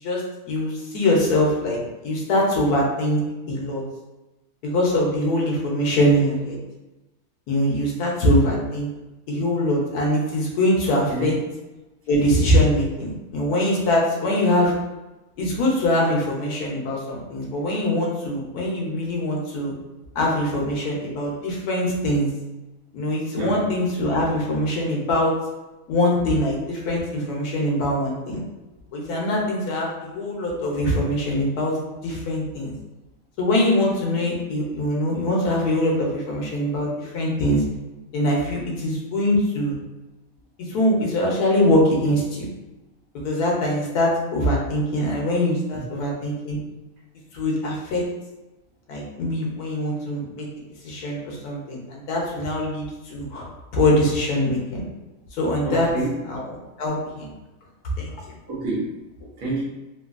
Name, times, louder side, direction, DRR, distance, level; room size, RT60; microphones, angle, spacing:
voice 1, 0.0-3.2 3.5-3.8 4.6-6.6 7.5-8.9 9.3-11.3 12.1-14.7 15.4-19.7 20.1-22.3 22.9-25.4 25.9-28.4 28.9-31.8 32.0-32.7 33.4-37.6 38.1-39.7 40.7-42.5 43.2-46.6 47.3-48.1 48.9-50.5 50.8-54.8 55.3-55.9 56.3-57.3 58.0-58.1, left 1 dB, 85° left, -3 dB, 1.3 m, -23 dB
voice 2, 55.6-56.1 58.5-58.9 59.4-59.6, right 3 dB, 65° right, -6 dB, 1.3 m, -27 dB
3.3 x 2.2 x 2.4 m, 1.0 s
omnidirectional pair, 1.6 m